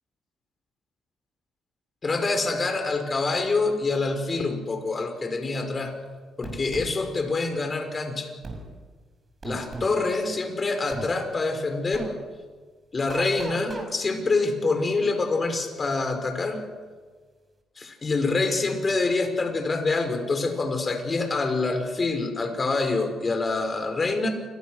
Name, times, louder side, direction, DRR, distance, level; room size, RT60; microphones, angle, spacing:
voice 1, 2.0-5.9 6.4-8.3 9.4-12.1 12.9-16.6 17.8-24.3, left 3 dB, 35° left, 5 dB, 5.2 m, -26 dB
sound 1, 6.4-6.9 8.4-8.6 9.4-9.9 10.9-11.1 11.9-12.1 13.1-13.9, right 3 dB, 30° right, 5.9 m, -35 dB
29.0 x 23.0 x 6.5 m, 1.4 s
cardioid pair, 90°, 0 cm